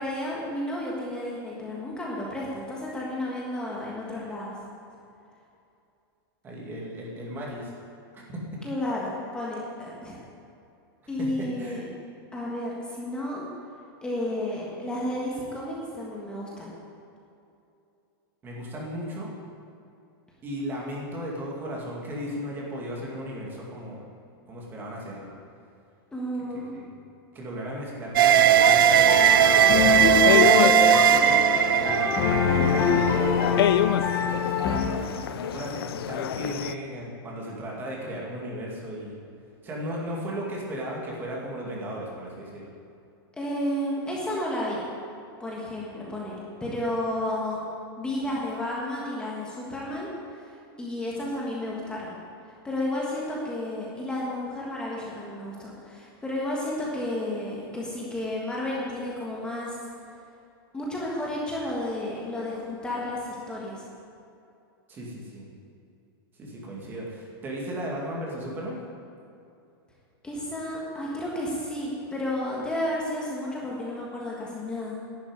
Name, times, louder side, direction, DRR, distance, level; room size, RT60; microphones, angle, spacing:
voice 1, 0.0-4.5 8.6-10.2 11.1-11.9 12.3-13.4 14.0-16.7 26.1-26.7 43.4-44.8 45.4-47.6 48.0-50.1 50.4-50.5 50.8-52.1 52.6-59.8 60.7-63.8 70.2-75.0, left 1 dB, 5° left, -5 dB, 1.5 m, -32 dB
voice 2, 6.4-7.7 8.1-8.4 11.2-11.9 18.4-19.3 20.4-24.0 24.5-25.3 26.7-26.9 27.3-32.1 32.5-33.8 34.2-34.5 35.3-39.1 39.6-42.7 64.9-65.5 66.4-68.8, equal, 15° right, -3 dB, 2.3 m, -36 dB
sound 1, 28.2-36.7, left 10 dB, 75° left, 0.5 m, -29 dB
sound 2, 28.2-33.5, right 10 dB, 60° right, 0.4 m, -19 dB
sound 3, 28.8-34.8, left 6 dB, 25° left, 1.3 m, -25 dB
11.0 x 7.3 x 9.0 m, 2.6 s
supercardioid pair, 165°, 13 cm